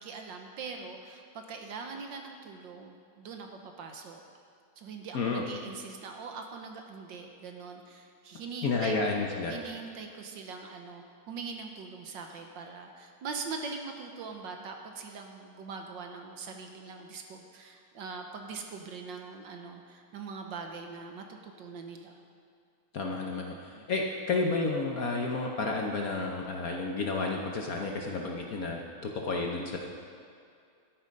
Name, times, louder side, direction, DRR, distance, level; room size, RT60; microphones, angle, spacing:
voice 1, 0.0-4.2 4.8-9.0 9.5-22.2 23.7-23.8, right 4 dB, 65° right, 3 dB, 1.5 m, -42 dB
voice 2, 8.6-9.6 22.9-29.8, left 3 dB, 55° left, 0 dB, 1.1 m, -31 dB
12.0 x 10.5 x 5.3 m, 2.3 s
omnidirectional pair, 2.3 m